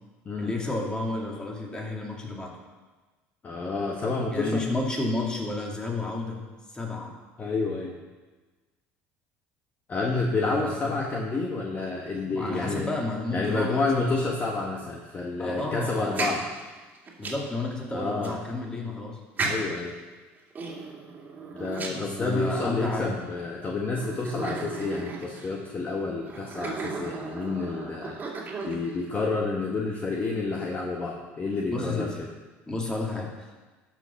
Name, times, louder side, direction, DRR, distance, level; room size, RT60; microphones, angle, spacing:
voice 1, 0.4-2.5 4.3-6.4 6.7-7.1 10.4-11.0 12.3-14.2 15.4-16.4 17.2-19.2 21.9-23.2 31.7-32.1 32.7-33.5, left 2 dB, 15° left, -1 dB, 2.5 m, -31 dB
voice 2, 3.4-4.6 7.4-7.9 9.9-12.9 13.3-16.4 17.9-18.4 19.4-19.9 21.5-28.2 28.6-32.3, left 3 dB, 30° left, 0 dB, 1.4 m, -29 dB
sound 1, 16.0-17.6 18.2-18.3 19.4-19.9 20.5-22.6 23.3-23.4 23.9-25.6 26.3-29.0, right 4 dB, 30° right, 2.3 m, -35 dB
12.5 x 6.1 x 5.9 m, 1.3 s
supercardioid pair, 105°, 5 cm